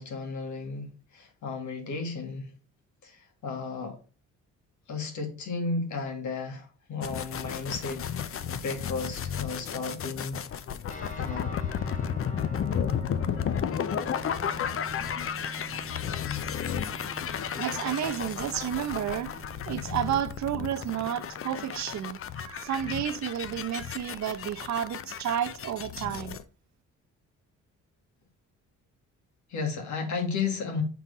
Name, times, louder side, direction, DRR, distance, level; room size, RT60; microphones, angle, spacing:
voice 1, 0.0-2.5 3.0-4.0 4.9-10.4 10.9-11.6 29.5-30.8, left 4 dB, 75° left, 2.0 m, -34 dB
sound 1, 7.0-26.4, left 8 dB, 45° left, 0.6 m, -33 dB
sound 2, 10.9-22.1, right 1 dB, 25° left, 1.6 m, -44 dB
voice 2, 17.4-26.4, right 10 dB, 65° right, 0.7 m, -31 dB
5.9 x 3.7 x 5.5 m
cardioid pair, 90°, 30 cm